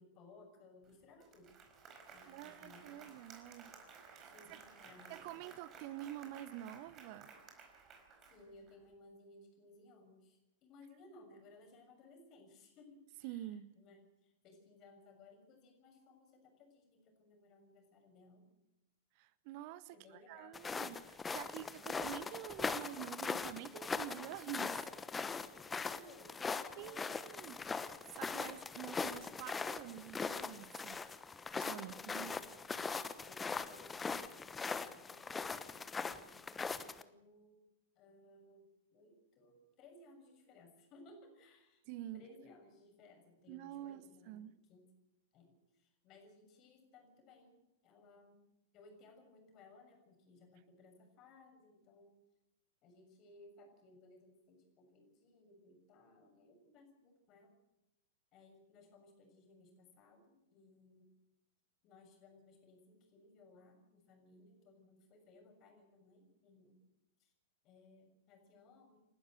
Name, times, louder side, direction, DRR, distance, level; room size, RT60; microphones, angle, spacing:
voice 1, 0.0-1.6 2.1-3.2 4.3-5.5 8.3-18.5 19.9-20.6 21.5-22.0 25.7-27.2 31.9-32.5 33.2-37.7 37.9-41.8 42.1-44.9 45.3-48.4 48.7-52.1 52.8-57.5 58.3-61.1 61.8-66.8 67.2-67.3 67.6-69.0, left 2 dB, 35° left, 6.9 m, -61 dB
Applause, 0.8-0.9 1.2-8.7, right 5 dB, 30° right, 4.8 m, -57 dB
voice 2, 2.2-3.7 4.1-4.6 5.1-7.3 13.2-13.7 19.2-24.8 26.8-27.8 28.1-31.0 31.6-32.3 41.9-42.2 43.5-44.5, right 13 dB, 45° right, 0.9 m, -48 dB
sound 1, 20.5-37.0, left 4 dB, 15° left, 1.1 m, -41 dB
29.0 x 12.5 x 7.9 m
figure-of-eight pair, 100°, 0 cm